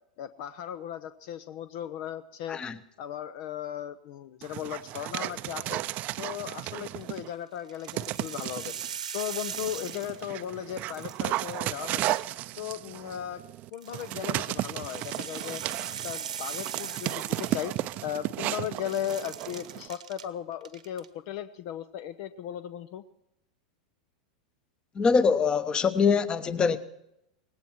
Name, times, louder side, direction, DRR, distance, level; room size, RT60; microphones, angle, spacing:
voice 1, 0.2-2.6 3.0-5.8 6.2-12.2 12.6-13.4 13.7-15.6 16.0-17.7 18.0-23.0, left 10 dB, 55° left, 0.8 m, -37 dB
Dog, 4.4-7.3 7.9-8.9 9.5-19.9, right 16 dB, 40° right, 0.6 m, -34 dB
sound 1, 6.9-7.2 7.7-10.4 10.7-12.6 13.7-18.3 18.5-20.2 20.6-21.1, right 8 dB, 80° right, 1.2 m, -40 dB
voice 2, 24.9-26.8, left 5 dB, 25° left, 1.1 m, -23 dB
19.0 x 17.0 x 4.5 m
hypercardioid pair, 95°, 4 cm